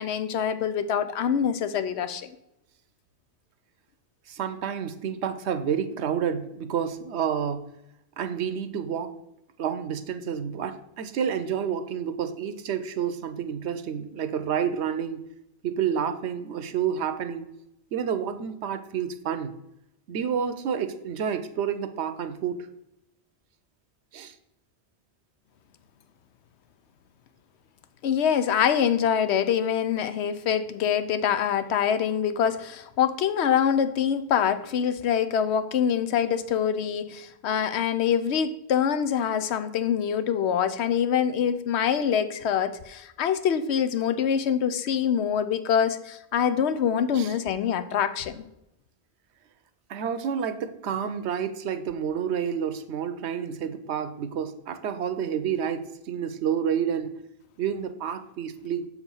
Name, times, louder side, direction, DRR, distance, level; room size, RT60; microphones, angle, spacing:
voice 1, 0.0-2.3 28.0-48.4, left 8 dB, 85° left, 11 dB, 0.9 m, -25 dB
voice 2, 4.3-7.7 8.2-9.1 9.6-15.2 15.6-17.5 17.9-19.6 20.1-22.6 24.1-24.3 47.1-47.3 49.9-57.1 57.6-58.9, right 8 dB, 85° right, 11 dB, 1.0 m, -29 dB
6.6 x 4.8 x 5.5 m, 0.84 s
omnidirectional pair, 1.1 m